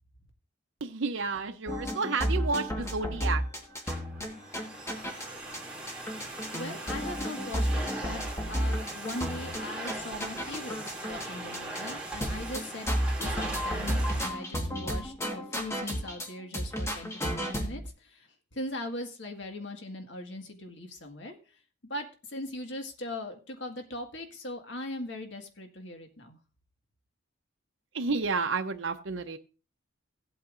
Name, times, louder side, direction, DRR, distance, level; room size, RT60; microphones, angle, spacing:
voice 1, 0.8-3.4 27.9-29.4, right 4 dB, 75° right, 6 dB, 0.8 m, -31 dB
sound 1, 1.7-5.3 5.5-5.6 5.9-11.3 11.5-11.9 12.2-16.3 16.5-17.9, equal, 15° left, 1.5 m, -32 dB
Domestic sounds home sounds, 3.6-14.3, right 2 dB, 5° right, 2.6 m, -40 dB
voice 2, 6.5-8.2 8.5-12.9 13.2-21.4 21.8-26.4, left 1 dB, 65° left, 4 dB, 1.9 m, -40 dB
16.5 x 8.4 x 2.6 m, 0.35 s
head